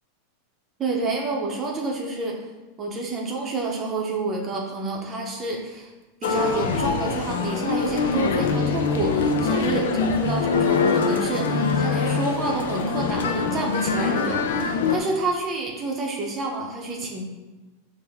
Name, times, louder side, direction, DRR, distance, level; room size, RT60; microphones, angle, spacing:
voice 1, 0.8-2.4 2.8-5.9 6.2-17.2, right 3 dB, 30° right, -1 dB, 0.7 m, -29 dB
Male speech man speaking, 6.2-15.0, left 5 dB, 80° left, 0.4 m, -23 dB
4.5 x 2.1 x 3.4 m, 1.2 s
hypercardioid pair, 105°, 0 cm